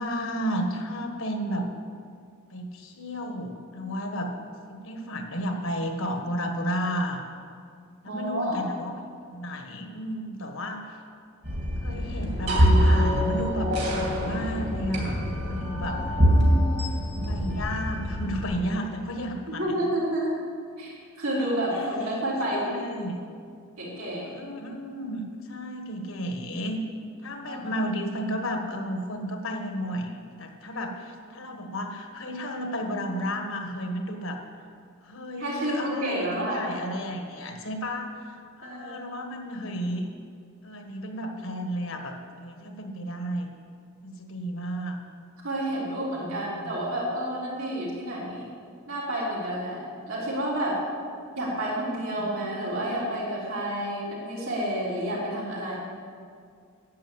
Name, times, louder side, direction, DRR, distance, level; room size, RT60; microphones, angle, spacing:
voice 1, 0.0-1.7 2.5-4.3 4.7-7.2 8.0-9.0 9.3-11.0 11.8-16.2 16.7-19.6 21.7-21.9 22.5-23.2 24.0-26.8 27.2-34.4 35.0-40.1 40.6-43.5 44.0-45.0 46.1-46.8 52.1-52.3, equal, 65° left, 4 dB, 1.5 m, -33 dB
voice 2, 8.1-8.6 15.8-16.9 19.5-20.4 20.8-22.9 23.8-24.3 27.4-27.7 30.7-30.8 35.4-36.7 38.6-39.0 45.4-48.5 48.9-50.8 51.4-55.8, right 1 dB, 70° right, -6 dB, 4.1 m, -30 dB
sound 1, 11.4-18.5, equal, 50° right, 3.0 m, -24 dB
11.0 x 8.5 x 8.0 m, 2.2 s
head